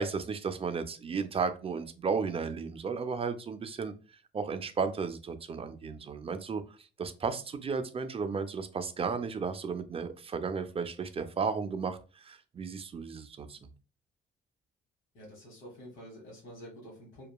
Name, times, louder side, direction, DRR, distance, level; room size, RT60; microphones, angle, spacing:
voice 1, 0.0-13.7, right 5 dB, 30° right, 0.3 m, -34 dB
voice 2, 15.1-17.3, equal, 85° left, 1.1 m, -48 dB
2.9 x 2.2 x 2.2 m
cardioid pair, 90°, 20 cm